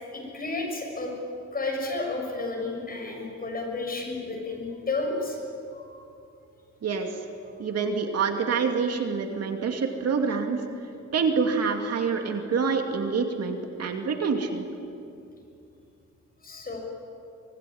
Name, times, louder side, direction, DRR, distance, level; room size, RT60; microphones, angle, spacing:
voice 1, 0.1-1.1 1.5-5.4 5.7-6.0 16.4-16.8, left 3 dB, 30° left, 0 dB, 6.8 m, -32 dB
voice 2, 7.6-10.6 11.1-14.6, right 5 dB, 60° right, 4 dB, 2.5 m, -26 dB
24.5 x 20.0 x 9.5 m, 2.6 s
cardioid pair, 135°, 29 cm